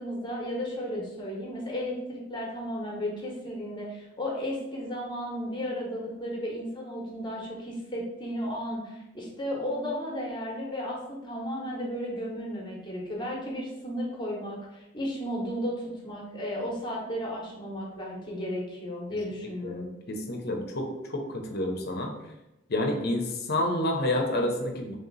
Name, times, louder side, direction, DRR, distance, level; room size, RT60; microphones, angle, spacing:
voice 1, 0.0-19.9, equal, 25° left, -3 dB, 0.9 m, -34 dB
voice 2, 19.6-22.1 22.7-25.0, left 1 dB, 50° left, 2 dB, 0.7 m, -29 dB
3.4 x 2.8 x 3.9 m, 0.96 s
head